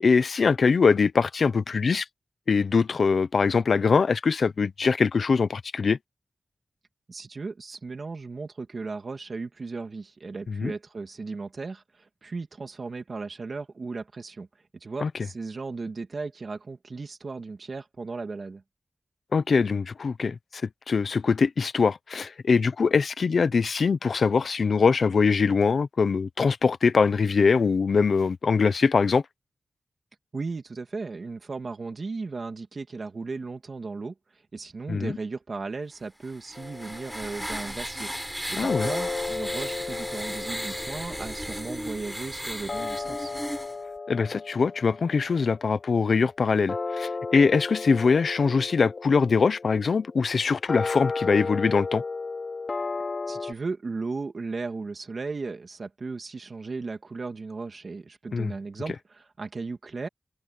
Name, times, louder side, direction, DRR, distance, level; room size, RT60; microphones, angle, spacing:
voice 1, 0.0-2.0 2.5-6.0 10.5-10.7 15.0-15.1 19.3-20.6 20.9-29.2 34.9-35.1 38.6-38.9 44.1-52.0 58.3-58.5, left 5 dB, 70° left, 0.8 m, -22 dB
voice 2, 7.1-14.5 14.8-18.6 30.3-34.1 34.5-38.1 38.5-43.3 53.3-60.1, right 4 dB, 50° right, 2.4 m, -36 dB
sound 1, 36.2-43.8, equal, 5° right, 5.9 m, -36 dB
sound 2, 36.6-37.9 38.7-53.5, left 4 dB, 50° left, 2.4 m, -35 dB
wide cardioid pair, 130°, 0 cm